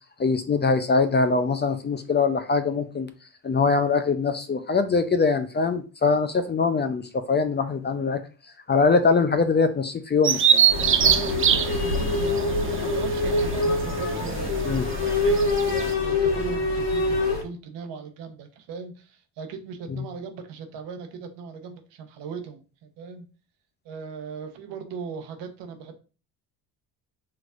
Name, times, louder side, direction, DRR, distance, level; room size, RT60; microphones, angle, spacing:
voice 1, 0.2-3.1 3.4-8.2 8.7-10.6 14.7-14.9, left 4 dB, 25° left, 9 dB, 0.5 m, -22 dB
Bird vocalization bird call bird song, 10.2-15.9, right 8 dB, 30° right, 0.5 m, -24 dB
sound 1, 10.7-17.4, left 2 dB, 70° left, 1.6 m, -25 dB
voice 2, 11.0-15.0 15.2-23.3 23.8-25.9, right 6 dB, 70° right, 6 dB, 1.1 m, -38 dB
5.7 x 3.2 x 2.5 m, 0.34 s
hypercardioid pair, 65°, 45 cm